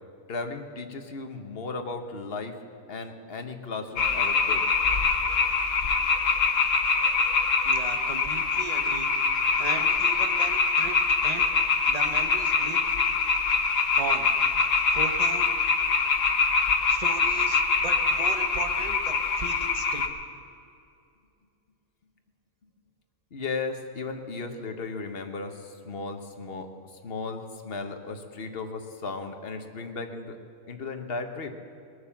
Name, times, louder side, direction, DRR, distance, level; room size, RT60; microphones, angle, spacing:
voice 1, 0.3-2.5 2.9-4.7 23.3-26.7 27.0-30.4 30.7-31.5, left 4 dB, 50° left, 6 dB, 1.3 m, -35 dB
sound 1, 4.0-20.1, left 4 dB, 70° left, 1.5 m, -24 dB
voice 2, 7.6-9.1 9.6-11.0 11.2-11.5 11.9-12.8 14.0-14.3 14.9-15.5 16.9-20.1, right 4 dB, 30° right, 6 dB, 1.1 m, -36 dB
20.0 x 9.5 x 7.2 m, 2.6 s
omnidirectional pair, 1.4 m